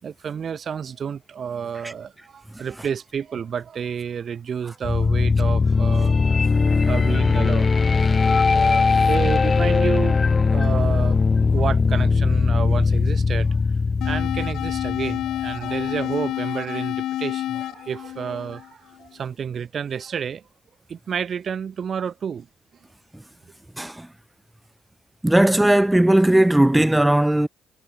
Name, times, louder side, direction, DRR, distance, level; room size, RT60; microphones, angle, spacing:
voice 1, 0.0-6.2 6.9-7.7 8.0-10.2 10.5-11.2 11.5-13.6 14.0-20.4 20.9-22.5, right 7 dB, 50° right, 5.3 m, -30 dB
sound 1, 4.8-15.7, left 4 dB, 30° left, 2.1 m, -20 dB
sound 2, 14.0-19.0, left 13 dB, 80° left, 2.0 m, -29 dB
voice 2, 23.8-24.1 25.2-27.5, right 1 dB, 10° right, 4.1 m, -17 dB
cardioid pair, 90°, 0 cm